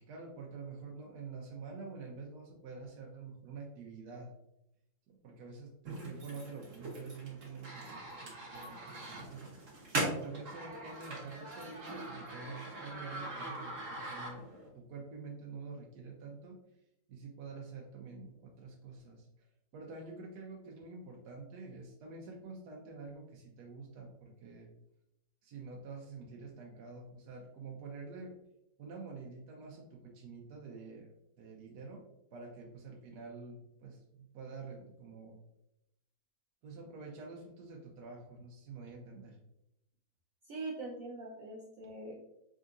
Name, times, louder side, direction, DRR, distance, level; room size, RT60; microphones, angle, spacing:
voice 1, 0.0-4.3 5.1-9.4 10.0-14.5 14.7-16.6 17.1-19.3 19.7-24.7 25.4-28.3 28.8-31.1 31.4-32.0 32.3-35.4 36.6-39.4, right 4 dB, 70° right, -1 dB, 1.1 m, -47 dB
sound 1, 5.8-14.7, right 2 dB, 50° right, 1.1 m, -41 dB
voice 2, 40.4-42.1, right 2 dB, 85° right, -1 dB, 0.7 m, -42 dB
3.7 x 3.7 x 2.5 m, 0.83 s
omnidirectional pair, 2.1 m